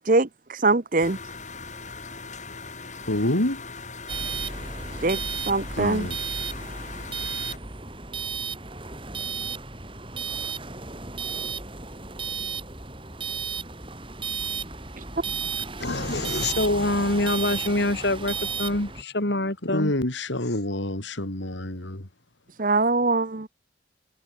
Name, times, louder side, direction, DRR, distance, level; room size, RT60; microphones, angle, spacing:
voice 1, 0.1-1.2 5.0-5.2 5.5-6.1 22.6-23.5, right 3 dB, 45° right, 0.9 m, -22 dB
sound 1, 1.0-7.6, left 4 dB, 40° left, 6.4 m, -40 dB
voice 2, 3.1-3.6 5.7-6.2 19.6-22.1, left 1 dB, 75° left, 3.0 m, -27 dB
sound 2, 4.1-19.0, right 5 dB, 25° right, 4.4 m, -33 dB
voice 3, 15.8-19.9, left 2 dB, 60° left, 2.8 m, -25 dB
head